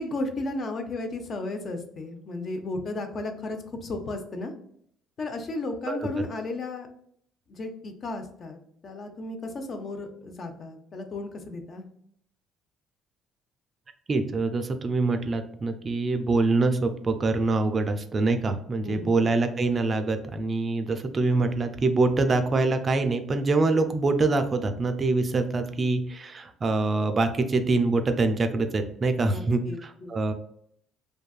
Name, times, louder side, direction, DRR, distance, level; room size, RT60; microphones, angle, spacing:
voice 1, 0.0-4.5 5.2-6.9 7.5-11.9 18.8-19.3 29.2-30.1, left 2 dB, 45° left, 6 dB, 0.5 m, -34 dB
voice 2, 14.1-30.3, right 3 dB, 35° right, 8 dB, 0.3 m, -25 dB
2.6 x 2.3 x 2.3 m, 0.66 s
supercardioid pair, 80°, 0 cm